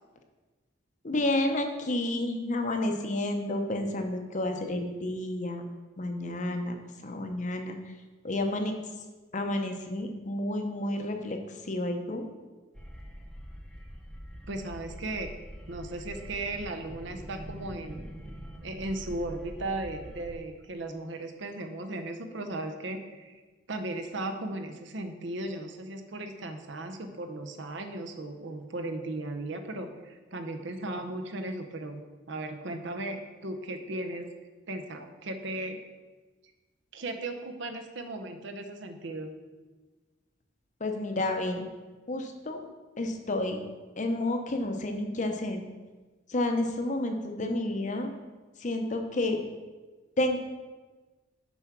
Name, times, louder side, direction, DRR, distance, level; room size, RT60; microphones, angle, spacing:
voice 1, 1.0-5.6 6.0-6.8 7.0-7.8 8.2-8.8 9.3-11.4 11.6-12.3 40.8-41.6 42.1-42.6 43.0-43.6 44.0-45.6 46.3-48.1 48.6-49.4 50.2-50.4, left 1 dB, 40° left, 5 dB, 0.7 m, -30 dB
sound 1, 12.7-20.3, equal, ahead, 0.8 m, -44 dB
voice 2, 14.5-18.1 18.6-23.4 23.7-32.0 32.3-34.3 34.7-35.8 36.9-39.3, right 2 dB, 60° right, 6 dB, 0.7 m, -36 dB
6.9 x 4.8 x 5.9 m, 1.3 s
head